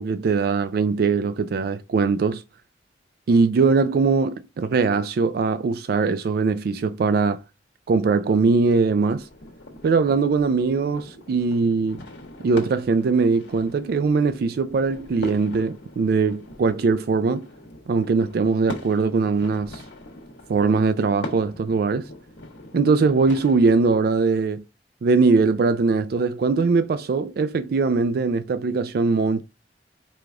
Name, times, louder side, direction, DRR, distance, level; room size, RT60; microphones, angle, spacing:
voice 1, 0.0-2.4 3.3-7.4 7.9-9.3 9.8-12.0 12.4-17.5 17.9-19.8 20.5-22.1 22.7-24.6 25.0-29.4, right 4 dB, 60° right, 0.3 m, -21 dB
sound 1, 9.1-24.0, left 1 dB, 90° left, 1.3 m, -41 dB
4.9 x 2.3 x 3.7 m
head